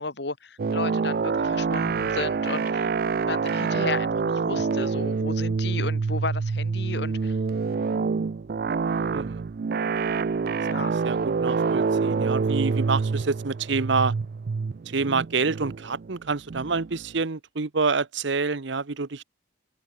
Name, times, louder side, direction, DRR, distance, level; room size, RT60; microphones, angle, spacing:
voice 1, 0.0-2.9 3.2-7.4 10.6-10.9, left 3 dB, 55° left, 1.5 m, -33 dB
sound 1, 0.6-17.1, right 5 dB, 50° right, 0.4 m, -26 dB
voice 2, 9.1-9.4 10.8-14.1 14.9-19.2, right 4 dB, 65° right, 0.9 m, -27 dB
head